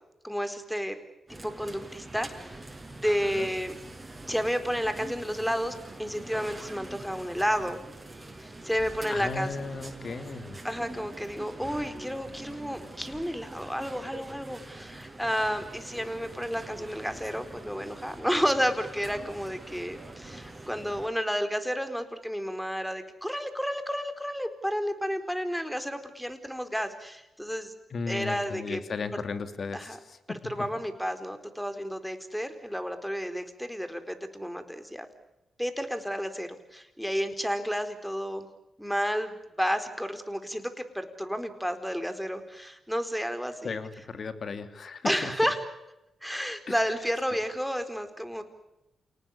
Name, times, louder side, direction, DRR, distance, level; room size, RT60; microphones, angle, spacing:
voice 1, 0.2-1.0 1.4-2.6 2.9-3.8 4.3-7.8 8.4-9.5 10.6-27.7 28.1-28.8 29.7-30.0 30.4-35.1 35.6-38.5 38.8-43.8 45.0-45.6 46.2-48.4, equal, ahead, 9 dB, 4.4 m, -31 dB
sound 1, 1.3-21.1, right 2 dB, 20° right, 6.0 m, -44 dB
voice 2, 9.1-10.6 27.9-30.4 43.6-45.3 46.7-46.8, left 4 dB, 55° left, 10 dB, 2.6 m, -35 dB
28.5 x 19.0 x 10.0 m, 0.93 s
supercardioid pair, 55°, 0 cm